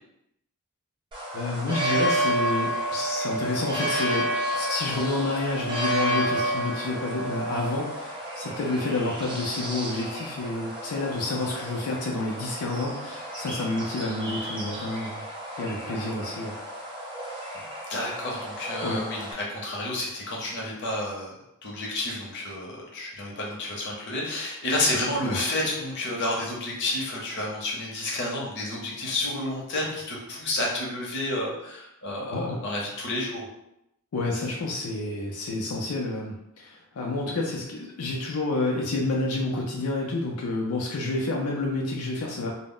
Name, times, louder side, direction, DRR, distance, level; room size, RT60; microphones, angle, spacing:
sound 1, 1.1-19.3, right 1 dB, 20° right, 0.5 m, -31 dB
voice 1, 1.3-15.2 15.6-16.6 18.8-19.0 25.2-25.4 32.3-32.6 34.1-42.5, left 2 dB, 85° left, -1 dB, 0.4 m, -29 dB
voice 2, 17.9-21.3 21.6-33.4, left 1 dB, 50° left, -3 dB, 0.7 m, -30 dB
2.0 x 2.0 x 3.6 m, 0.82 s
head